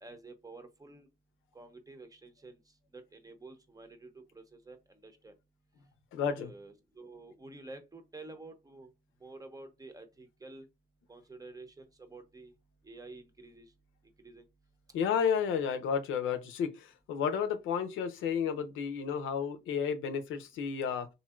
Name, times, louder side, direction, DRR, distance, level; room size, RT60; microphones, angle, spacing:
voice 1, 0.0-1.1 1.5-2.6 2.9-4.1 4.3-4.8 5.0-5.3 6.4-8.9 9.2-10.7 11.1-12.5 12.8-13.7 14.2-14.4, right 2 dB, 15° right, 0.7 m, -50 dB
voice 2, 6.1-6.5 14.9-21.1, left 7 dB, 85° left, 0.6 m, -32 dB
3.1 x 2.7 x 2.3 m
cardioid pair, 90°, 20 cm